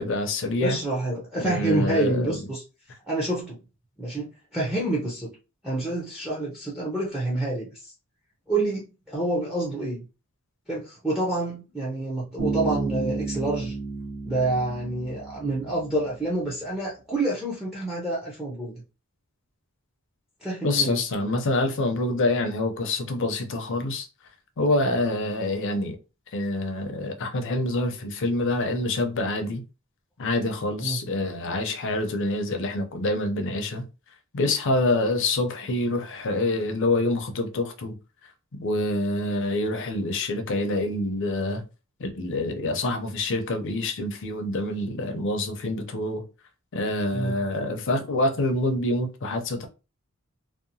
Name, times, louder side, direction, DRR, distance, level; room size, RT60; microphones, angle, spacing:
voice 1, 0.0-0.8 1.4-2.3 20.6-24.1 24.6-26.0 26.3-29.6 30.2-33.8 34.3-38.0 38.5-41.6 42.0-46.2 46.7-49.7, left 2 dB, 60° left, 0.5 m, -26 dB
voice 2, 0.6-2.6 3.1-3.6 4.0-5.3 5.6-7.9 8.5-10.0 10.7-13.7 14.3-18.8 20.4-21.0 30.8-31.0 47.1-47.3, right 2 dB, ahead, 0.5 m, -28 dB
Bass guitar, 12.4-16.0, right 4 dB, 55° right, 1.1 m, -32 dB
2.8 x 2.1 x 2.6 m
head